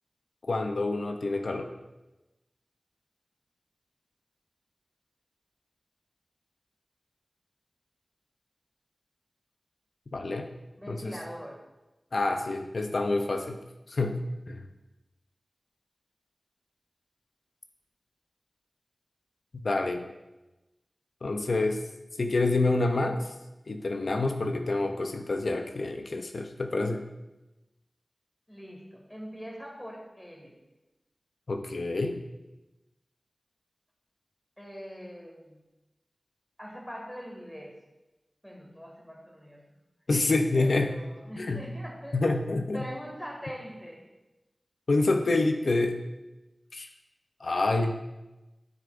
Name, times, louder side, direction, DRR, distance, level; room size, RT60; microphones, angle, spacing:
voice 1, 0.4-1.7 10.1-10.5 10.9-11.2 12.1-13.6 13.9-14.2 14.5-14.7 19.6-20.1 21.2-21.8 22.2-23.3 23.7-27.1 31.5-32.2 40.1-40.9 41.4-41.7 42.1-42.9 44.9-46.0 46.7-46.9 47.4-48.0, left 2 dB, 85° left, 5 dB, 0.5 m, -27 dB
voice 2, 10.8-11.6 28.5-30.6 34.6-35.6 36.6-37.8 38.4-39.7 40.5-42.2 42.7-44.1, equal, 5° left, -1 dB, 1.9 m, -42 dB
12.0 x 6.6 x 2.5 m, 1.0 s
wide cardioid pair, 70°, 0 cm